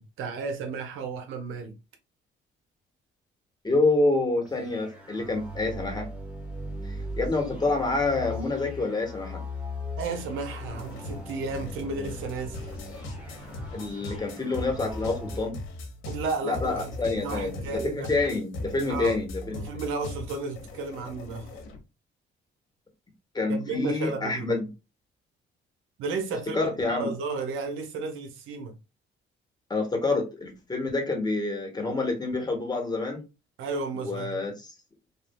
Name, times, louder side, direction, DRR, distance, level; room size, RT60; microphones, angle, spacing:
voice 1, 0.0-1.8 10.0-12.7 16.1-18.1 18.9-19.2 19.5-21.5 23.5-24.6 26.0-28.7 33.6-34.5, right 4 dB, 90° right, 0.8 m, -33 dB
voice 2, 3.6-6.1 6.8-9.4 13.7-15.5 16.4-19.8 23.3-24.7 26.5-27.1 29.7-33.2 33.9-34.7, left 3 dB, 20° left, 1.1 m, -27 dB
sound 1, 4.4-15.5, left 1 dB, 5° right, 1.2 m, -39 dB
sound 2, 10.7-21.8, left 2 dB, 85° left, 1.0 m, -39 dB
3.2 x 2.4 x 2.2 m
cardioid pair, 90°, 20 cm